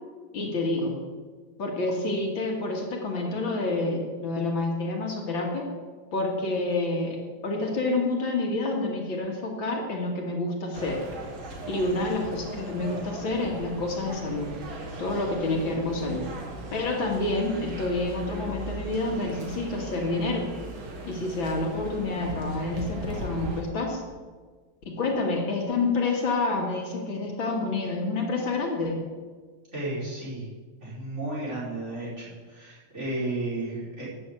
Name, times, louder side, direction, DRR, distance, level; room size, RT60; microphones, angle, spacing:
voice 1, 0.3-1.0 1.6-5.7 6.1-7.2 7.4-11.0 11.7-14.5 15.0-16.3 16.7-20.5 21.0-24.0 24.9-29.0, left 2 dB, 70° left, 0 dB, 2.7 m, -28 dB
sound 1, 10.7-23.6, right 2 dB, 80° right, 2.7 m, -38 dB
voice 2, 29.7-30.5 30.8-34.0, right 2 dB, 35° right, -8 dB, 5.4 m, -33 dB
12.5 x 7.8 x 8.1 m, 1.5 s
omnidirectional pair, 2.2 m